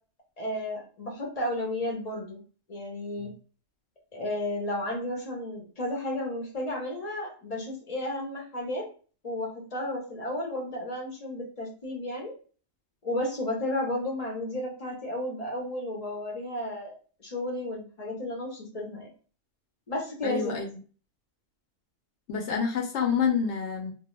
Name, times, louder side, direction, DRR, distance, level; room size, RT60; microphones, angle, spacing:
voice 1, 0.4-2.4 2.7-3.3 4.1-8.9 9.2-12.3 13.0-16.9 17.2-19.1 19.9-20.5, left 1 dB, 40° left, -1 dB, 0.6 m, -33 dB
voice 2, 20.2-20.7 22.3-23.9, left 6 dB, 70° left, 2 dB, 0.8 m, -27 dB
2.3 x 2.1 x 2.9 m, 0.40 s
omnidirectional pair, 1.3 m